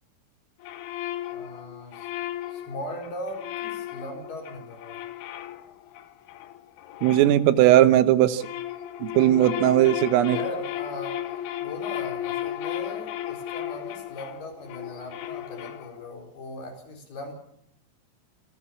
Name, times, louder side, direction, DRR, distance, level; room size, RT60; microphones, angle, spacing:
sound 1, 0.6-7.9 8.2-16.2, left 12 dB, 75° left, 3.7 m, -35 dB
voice 1, 1.3-2.1 2.5-5.0 10.2-17.3, left 1 dB, 50° left, 2 dB, 6.2 m, -39 dB
voice 2, 7.0-8.5 9.0-10.4, right 13 dB, 85° right, 12 dB, 3.8 m, -18 dB
27.0 x 16.5 x 7.2 m, 0.72 s
omnidirectional pair, 5.8 m